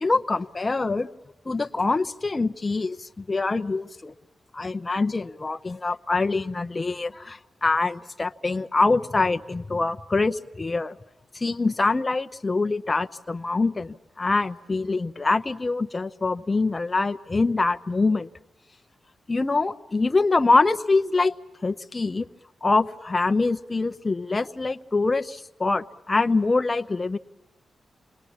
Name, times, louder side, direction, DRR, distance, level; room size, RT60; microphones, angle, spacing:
voice 1, 0.0-1.1 1.5-4.1 4.5-11.0 11.3-18.3 19.3-21.3 21.6-22.3 22.6-27.2, left 3 dB, 25° left, 8 dB, 0.8 m, -24 dB
28.0 x 20.5 x 7.2 m, 1.0 s
wide cardioid pair, 120°, 0 cm